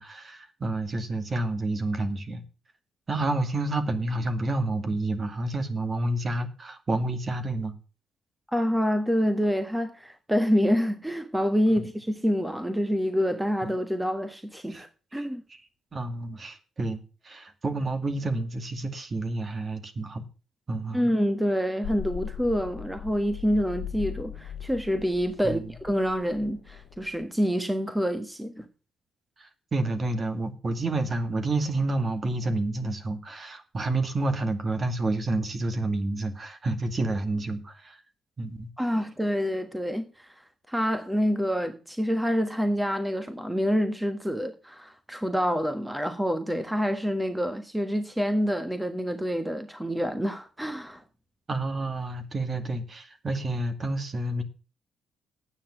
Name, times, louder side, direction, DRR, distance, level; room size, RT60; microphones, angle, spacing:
voice 1, 0.0-2.4 3.1-7.7 11.8-11.9 14.7-14.8 15.1-15.6 15.9-20.2 20.7-21.1 25.4-25.7 29.4-38.0 38.4-38.7 51.5-54.4, right 2 dB, 35° right, 2.2 m, -29 dB
voice 2, 8.5-15.4 20.9-28.6 38.8-40.3 40.7-51.0, equal, 5° right, 1.4 m, -27 dB
sound 1, 21.8-27.2, left 9 dB, 80° left, 0.8 m, -39 dB
9.9 x 9.1 x 5.9 m
cardioid pair, 90°, 0 cm